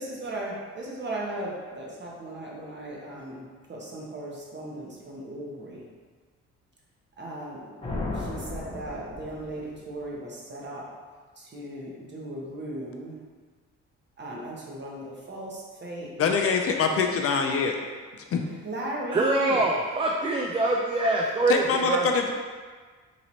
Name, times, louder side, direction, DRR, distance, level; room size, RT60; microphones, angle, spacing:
voice 1, 0.0-5.8 7.2-7.7 8.1-10.8 11.5-13.1 14.2-16.1 18.4-19.6, right 1 dB, 35° right, -3 dB, 1.0 m, -37 dB
sound 1, 7.8-9.8, left 2 dB, 20° left, 0.8 m, -34 dB
voice 2, 16.2-17.8 18.3-18.4 21.5-22.3, left 5 dB, 50° left, 3 dB, 0.4 m, -24 dB
voice 3, 19.1-22.1, right 2 dB, 20° right, -1 dB, 0.3 m, -24 dB
3.1 x 2.8 x 4.0 m, 1.5 s
cardioid pair, 90°, 30 cm